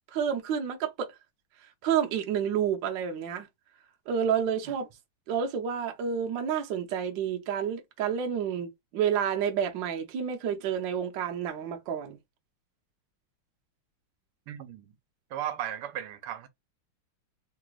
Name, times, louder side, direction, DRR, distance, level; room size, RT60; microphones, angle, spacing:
voice 1, 0.1-1.1 1.8-3.5 4.1-4.9 5.3-12.2, right 8 dB, 65° right, 1.4 m, -29 dB
voice 2, 14.5-14.9 15.3-16.5, right 10 dB, 85° right, 1.6 m, -35 dB
3.8 x 2.9 x 2.3 m
omnidirectional pair, 2.4 m